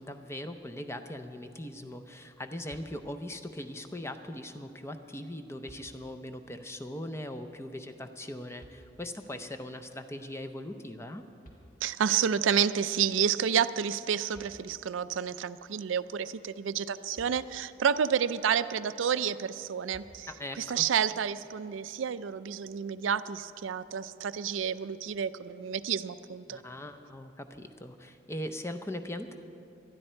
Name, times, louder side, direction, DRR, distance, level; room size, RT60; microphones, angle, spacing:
voice 1, 0.0-11.2 20.3-20.8 26.5-29.4, left 1 dB, 15° left, 8 dB, 0.6 m, -40 dB
sound 1, 2.7-3.4 4.9-5.0 5.6-6.4 8.6-9.3 11.1-11.2 11.4-12.3 14.0-14.1 14.3-15.1 17.1-18.0 19.9-20.7, right 1 dB, 45° left, 1.8 m, -55 dB
voice 2, 11.8-20.3 20.6-26.6, right 8 dB, 80° right, 14 dB, 0.4 m, -30 dB
19.5 x 12.5 x 4.4 m, 2.7 s
head